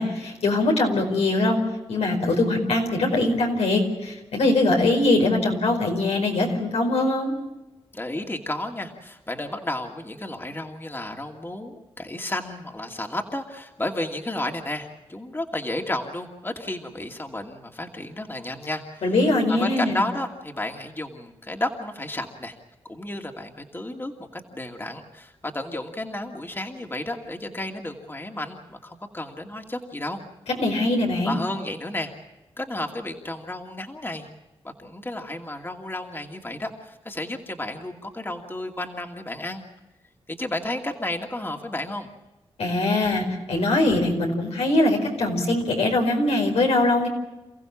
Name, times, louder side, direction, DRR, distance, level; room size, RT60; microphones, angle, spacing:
voice 1, 0.0-1.6 1.9-7.3 19.0-20.0 30.6-31.4 42.6-47.1, left 2 dB, 85° left, 1 dB, 4.9 m, -22 dB
voice 2, 7.9-19.0 19.5-22.5 22.9-30.2 31.2-32.1 32.6-34.3 34.6-39.6 40.3-42.1, left 1 dB, 20° left, 2 dB, 2.5 m, -32 dB
29.0 x 15.5 x 7.4 m, 1.0 s
cardioid pair, 55°, 11 cm